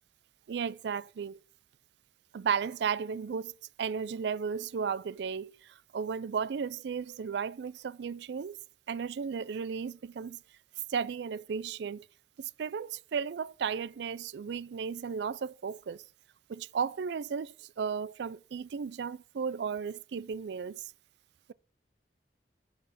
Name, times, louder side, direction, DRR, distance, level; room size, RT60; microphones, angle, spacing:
voice 1, 0.5-1.4 2.3-8.6 8.9-10.4 10.9-12.1 12.4-16.0 16.5-20.9, right 6 dB, 65° right, 0.4 m, -34 dB
8.2 x 4.8 x 7.0 m
head